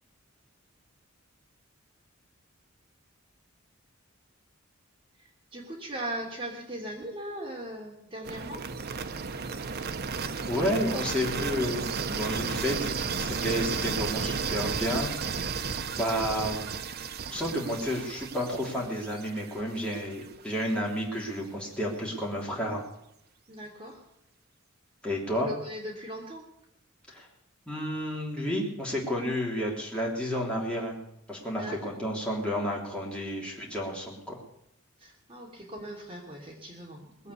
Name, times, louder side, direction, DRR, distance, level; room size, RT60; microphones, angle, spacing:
voice 1, 5.2-8.6 23.5-24.0 25.4-26.5 31.5-32.0 35.0-37.3, right 1 dB, 25° right, -1 dB, 3.0 m, -39 dB
sound 1, 8.2-20.2, right 5 dB, 50° right, 0.8 m, -33 dB
voice 2, 10.5-15.6 16.0-16.6 17.3-22.8 25.0-25.5 27.1-27.3 27.7-31.0 31.3-34.4 37.2-37.3, equal, 5° left, -4 dB, 3.4 m, -31 dB
20.0 x 8.2 x 8.3 m, 0.78 s
head